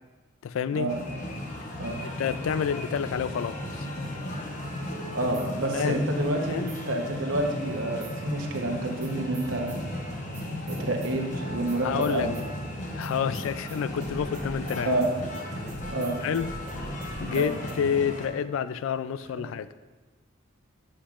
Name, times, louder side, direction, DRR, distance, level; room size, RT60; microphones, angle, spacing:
voice 1, 0.4-0.9 2.2-3.9 5.7-6.1 6.5-6.7 11.8-12.3 12.9-14.9 16.2-16.5 17.2-19.7, left 7 dB, 75° left, 14 dB, 0.3 m, -29 dB
sound 1, 0.9-18.3, left 1 dB, 35° left, 0.9 m, -36 dB
sound 2, 4.1-6.2 6.7-8.3 8.7-17.7, right 2 dB, 35° right, 1.0 m, -45 dB
voice 2, 5.1-6.6 6.9-9.8 10.7-12.4 14.8-15.1 15.9-16.2 17.3-17.5, right 1 dB, 70° right, 2 dB, 1.0 m, -28 dB
8.4 x 7.8 x 2.4 m, 1.2 s
head